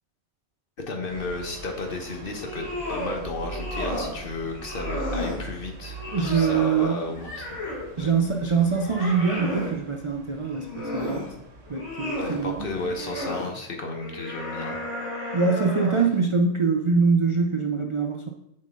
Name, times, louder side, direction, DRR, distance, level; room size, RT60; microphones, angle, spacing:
voice 1, 0.9-7.7 8.0-8.1 12.2-14.8, left 2 dB, 50° left, 3 dB, 1.2 m, -33 dB
sound 1, 1.1-13.4, right 2 dB, 90° right, 1.5 m, -42 dB
sound 2, 2.3-3.2 3.5-4.2 4.5-5.4 5.9-7.9 8.4-9.8 10.4-11.3 11.7-12.4 12.9-13.5 14.0-16.2, left 1 dB, 75° left, 2.3 m, -33 dB
voice 2, 6.1-7.0 8.0-11.2 11.7-12.7 15.3-18.3, right 5 dB, 45° right, 3 dB, 0.4 m, -23 dB
7.5 x 5.4 x 3.7 m, 0.82 s
omnidirectional pair, 1.3 m